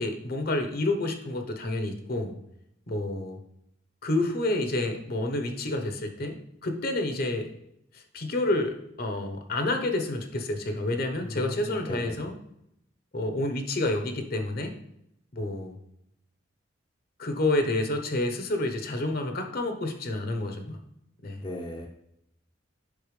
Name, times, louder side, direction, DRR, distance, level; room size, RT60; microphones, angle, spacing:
voice 1, 0.0-2.4 2.9-3.4 4.0-7.5 7.9-12.3 13.1-14.8 15.3-15.8 17.2-20.8 21.2-21.4, left 2 dB, 50° left, 5 dB, 0.9 m, -29 dB
voice 2, 11.2-12.2 21.4-21.9, left 1 dB, 25° left, 0 dB, 0.7 m, -36 dB
8.4 x 5.8 x 3.3 m, 0.79 s
head